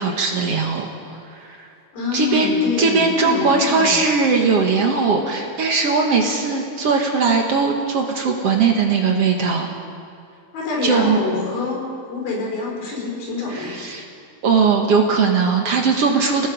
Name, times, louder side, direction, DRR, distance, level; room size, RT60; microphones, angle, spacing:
voice 1, 0.0-1.7 2.1-9.7 10.8-11.2 13.5-14.0 14.4-16.5, right 4 dB, 55° right, 2 dB, 1.9 m, -19 dB
voice 2, 1.9-4.0 10.5-13.8, left 4 dB, 85° left, -2 dB, 6.2 m, -26 dB
28.5 x 18.0 x 5.2 m, 2.5 s
omnidirectional pair, 4.2 m